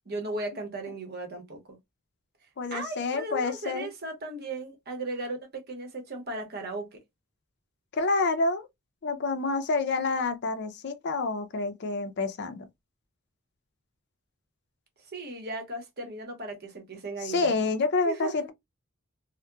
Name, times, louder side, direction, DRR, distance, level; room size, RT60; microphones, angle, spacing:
voice 1, 0.1-1.8 2.4-7.0 15.0-17.6 18.0-18.5, right 2 dB, 50° right, 0.9 m, -37 dB
voice 2, 2.6-3.9 8.0-8.7 9.0-12.7 17.3-18.5, left 3 dB, 55° left, 0.5 m, -28 dB
2.7 x 2.1 x 2.2 m
head